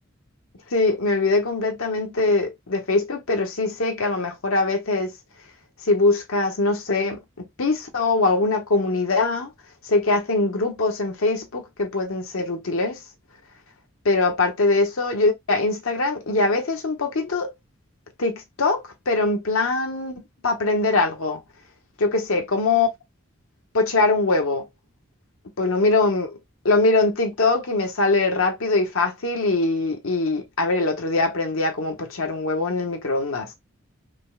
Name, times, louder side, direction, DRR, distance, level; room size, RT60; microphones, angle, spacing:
voice 1, 0.7-5.1 5.8-9.5 9.8-13.0 14.0-17.5 18.2-20.1 20.4-21.4 22.0-22.9 23.7-24.7 25.6-26.4 26.6-33.5, left 3 dB, 90° left, 1.0 m, -22 dB
5.1 x 2.1 x 2.3 m
head